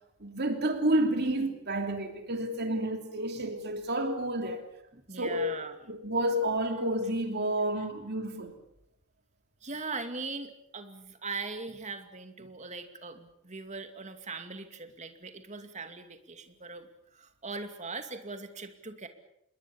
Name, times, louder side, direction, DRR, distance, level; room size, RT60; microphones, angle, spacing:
voice 1, 0.2-4.6 5.1-5.6 5.9-8.5, right 1 dB, 50° right, 3.0 m, -30 dB
voice 2, 4.9-5.7 9.6-19.1, right 4 dB, 35° right, 2.5 m, -40 dB
27.0 x 21.5 x 7.1 m
head